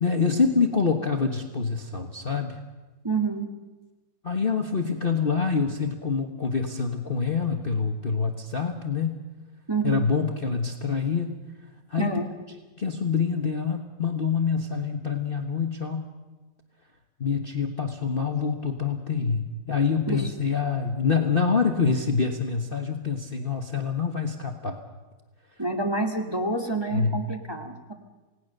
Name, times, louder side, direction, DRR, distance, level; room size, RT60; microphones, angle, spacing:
voice 1, 0.0-2.6 4.2-9.2 9.8-11.4 11.9-12.2 12.5-16.1 17.2-24.8 26.9-27.2, left 5 dB, 35° left, 4 dB, 1.4 m, -26 dB
voice 2, 3.0-3.5 9.7-10.1 12.0-12.3 20.1-20.2 25.6-27.9, right 3 dB, 15° right, 2 dB, 1.8 m, -28 dB
28.0 x 18.5 x 6.6 m, 1.2 s
omnidirectional pair, 2.0 m